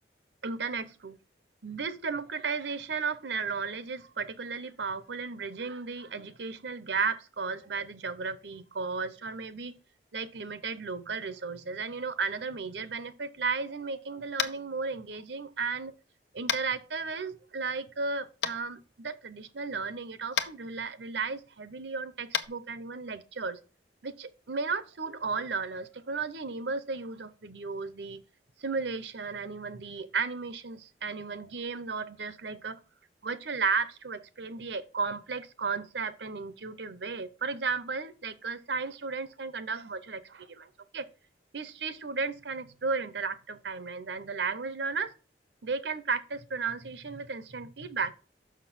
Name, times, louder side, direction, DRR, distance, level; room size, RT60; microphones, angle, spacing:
voice 1, 0.4-1.2 1.6-9.7 10.1-15.9 16.3-23.6 24.0-28.2 28.6-32.8 33.2-41.1 41.5-45.1 45.6-48.1, right 4 dB, 75° right, 0.8 m, -34 dB
Tap, 14.4-14.6 16.5-16.6 18.4-18.5 20.3-20.5 22.3-22.5, left 7 dB, 85° left, 0.8 m, -29 dB
6.3 x 6.0 x 6.1 m
head